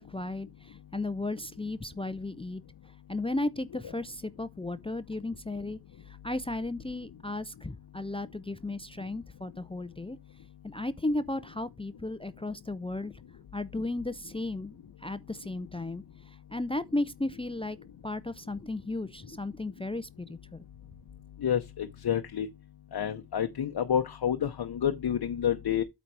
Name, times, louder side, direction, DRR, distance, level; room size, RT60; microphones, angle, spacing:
voice 1, 0.0-2.6 3.1-5.8 6.2-10.2 10.6-13.1 13.5-17.8 18.0-20.6, left 2 dB, 15° left, 0.5 m, -35 dB
voice 2, 21.4-22.5 22.9-25.8, left 9 dB, 70° left, 0.8 m, -29 dB
8.7 x 4.0 x 4.7 m
wide cardioid pair, 80°, 41 cm